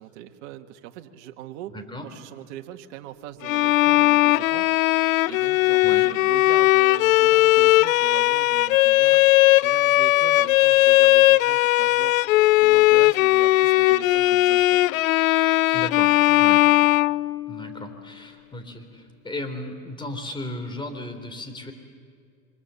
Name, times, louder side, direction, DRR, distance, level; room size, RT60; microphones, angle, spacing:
voice 1, 0.0-1.8 2.0-12.2 12.6-14.8, right 12 dB, 60° right, 6 dB, 1.9 m, -41 dB
voice 2, 1.7-2.1 5.8-6.1 15.7-16.1 16.4-16.6 17.5-21.7, left 1 dB, 10° left, 7 dB, 3.7 m, -35 dB
Bowed string instrument, 3.4-17.7, left 17 dB, 85° left, 0.5 m, -18 dB
26.5 x 25.5 x 7.1 m, 2.1 s
hypercardioid pair, 110°, 39 cm